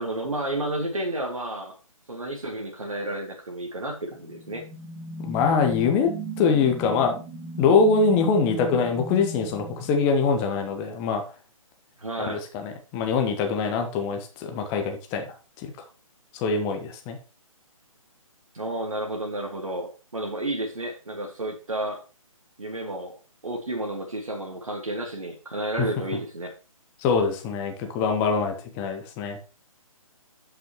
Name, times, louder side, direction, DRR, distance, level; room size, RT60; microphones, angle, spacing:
voice 1, 0.0-1.7 2.1-4.6 12.0-12.4 18.5-22.0 22.6-23.1 23.4-26.5, right 1 dB, 65° right, 0 dB, 1.8 m, -31 dB
sound 1, 4.0-10.6, right 1 dB, 15° right, 2.1 m, -36 dB
voice 2, 5.2-6.1 6.4-7.1 7.6-11.2 12.2-15.2 15.6-15.7 16.3-17.2 25.8-25.9 27.0-29.4, left 5 dB, 15° left, 4 dB, 0.8 m, -23 dB
11.5 x 5.7 x 3.0 m, 0.34 s
figure-of-eight pair, 140°, 18 cm